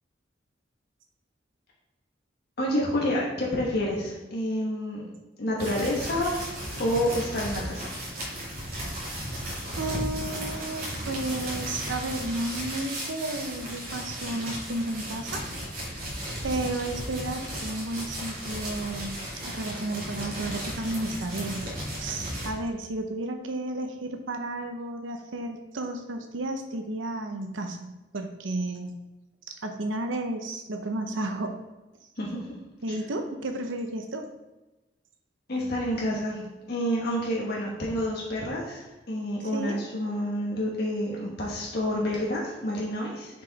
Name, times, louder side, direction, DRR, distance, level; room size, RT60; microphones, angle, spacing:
voice 1, 2.6-5.1 5.4-6.5 6.8-8.0 32.2-32.6 32.9-33.0 35.5-43.4, equal, 60° left, -3 dB, 1.2 m, -29 dB
sound 1, 5.6-22.5, equal, 50° right, 2.3 m, -35 dB
voice 2, 9.8-15.4 16.4-21.7 22.0-29.0 29.5-31.6 32.8-34.3 39.4-39.8, right 2 dB, 85° right, 5 dB, 0.7 m, -32 dB
6.6 x 4.8 x 4.0 m, 1.1 s
head